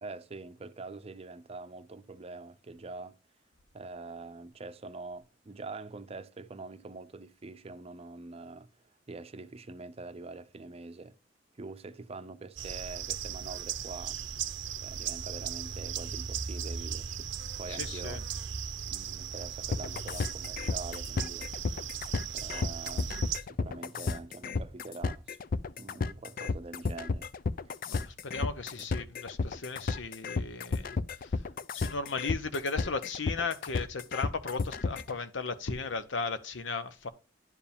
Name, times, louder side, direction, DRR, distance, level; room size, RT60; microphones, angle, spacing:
voice 1, 0.0-3.2 3.7-11.1 11.6-14.2 14.8-17.3 17.6-18.2 18.9-21.5 21.9-22.1 22.3-25.4 25.8-27.3, right 3 dB, 35° right, 0.6 m, -45 dB
sound 1, 12.6-23.4, right 8 dB, 90° right, 0.7 m, -37 dB
voice 2, 17.7-18.2 27.9-31.4 31.7-37.1, left 4 dB, 90° left, 0.9 m, -36 dB
sound 2, 19.7-35.1, left 4 dB, 50° left, 0.5 m, -32 dB
10.5 x 4.8 x 3.5 m
head